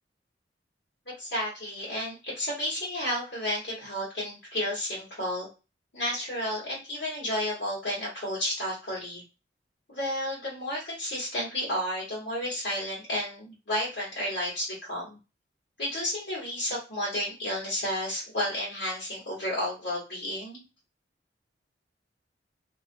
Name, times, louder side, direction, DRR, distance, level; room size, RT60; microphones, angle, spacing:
voice 1, 1.2-5.5 5.9-9.2 9.9-15.2 15.8-20.6, left 1 dB, 85° left, -5 dB, 1.2 m, -32 dB
2.4 x 2.4 x 2.5 m, 0.30 s
head